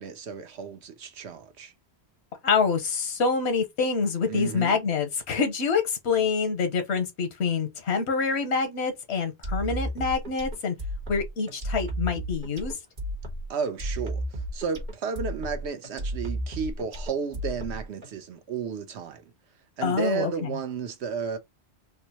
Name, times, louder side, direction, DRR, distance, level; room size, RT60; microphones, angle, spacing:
voice 1, 0.0-1.7 4.3-4.8 13.5-19.3 19.8-21.4, right 6 dB, 80° right, 1.0 m, -33 dB
voice 2, 2.4-10.7 11.1-12.7 19.8-20.3, left 5 dB, 85° left, 1.2 m, -26 dB
sound 1, 9.4-18.1, right 1 dB, 45° right, 1.2 m, -33 dB
3.7 x 2.2 x 2.8 m
omnidirectional pair, 1.1 m